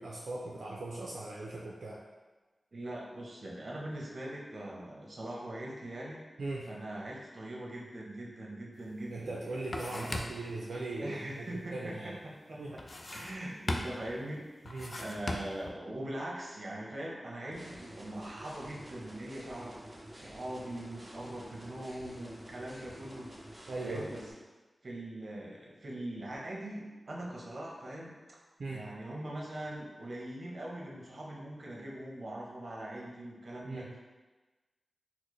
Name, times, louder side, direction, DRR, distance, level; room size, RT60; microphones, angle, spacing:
voice 1, 0.0-2.0 6.4-6.7 9.1-12.2 12.6-12.8 14.6-15.0 23.7-24.1 28.6-28.8 33.6-33.9, right 2 dB, 80° right, -4 dB, 0.4 m, -39 dB
voice 2, 2.7-6.2 6.6-9.4 9.9-10.1 11.0-12.8 13.1-19.8 20.1-23.3 23.8-24.2 24.8-28.4 28.7-34.0, right 1 dB, 60° right, -3 dB, 0.7 m, -42 dB
sound 1, 8.9-9.0 9.3-10.5 12.8-13.4 13.7-14.1 14.7-15.7, left 2 dB, 45° left, 0.3 m, -38 dB
sound 2, 17.5-24.3, right 1 dB, 25° right, 0.6 m, -50 dB
4.2 x 2.0 x 3.1 m, 1.2 s
cardioid pair, 55°, 0 cm